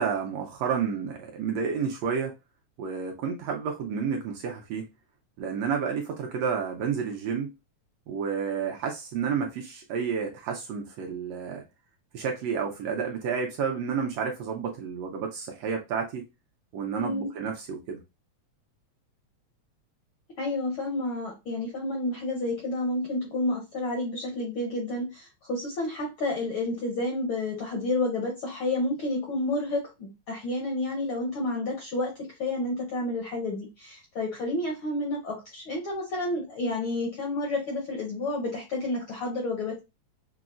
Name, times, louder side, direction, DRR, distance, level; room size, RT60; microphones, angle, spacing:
voice 1, 0.0-2.3 2.8-4.9 5.4-7.5 8.1-11.6 12.1-16.3 16.7-18.0, right 6 dB, 75° right, 1.6 m, -30 dB
voice 2, 16.9-17.3 20.4-32.1 32.4-39.8, left 2 dB, 70° left, 1.2 m, -30 dB
6.0 x 2.0 x 2.4 m
omnidirectional pair, 3.3 m